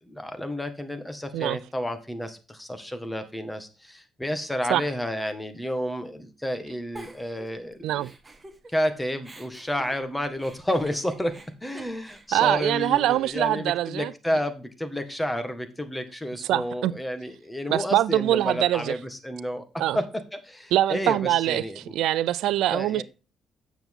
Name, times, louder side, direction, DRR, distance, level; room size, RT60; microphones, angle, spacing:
voice 1, 0.0-8.1 8.7-11.3 11.6-19.6 19.9-20.0 20.3-22.0 22.7-23.0, equal, 10° left, 1.6 m, -31 dB
Giggle, 7.0-8.9 9.2-13.5, right 2 dB, 20° right, 1.6 m, -47 dB
voice 2, 12.3-14.1 16.5-17.0 17.7-18.9 19.8-20.0 20.7-23.0, right 13 dB, 85° right, 0.4 m, -23 dB
9.0 x 7.2 x 3.7 m
cardioid pair, 90°, 0 cm